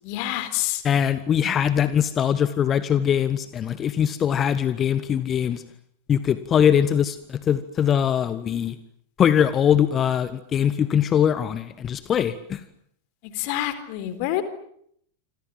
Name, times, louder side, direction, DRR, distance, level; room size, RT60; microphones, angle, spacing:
voice 1, 0.0-0.8 13.2-14.4, left 14 dB, 45° left, 13 dB, 4.0 m, -27 dB
voice 2, 0.8-5.6 6.1-8.7 9.2-12.6, left 9 dB, 25° left, 15 dB, 1.3 m, -22 dB
28.0 x 26.0 x 7.6 m, 0.68 s
figure-of-eight pair, 90°, 0 cm